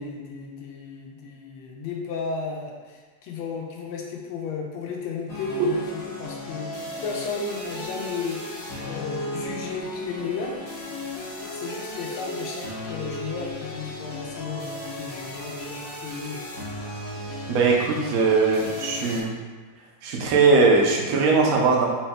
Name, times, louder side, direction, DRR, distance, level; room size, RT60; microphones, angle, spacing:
voice 1, 0.0-10.6 11.5-16.4, left 5 dB, 80° left, -1 dB, 1.4 m, -34 dB
sound 1, 5.3-19.2, left 1 dB, 55° left, 1.0 m, -35 dB
voice 2, 17.5-19.3 20.0-21.9, right 4 dB, 75° right, -2 dB, 0.8 m, -20 dB
4.2 x 3.4 x 2.2 m, 1.4 s
omnidirectional pair, 2.3 m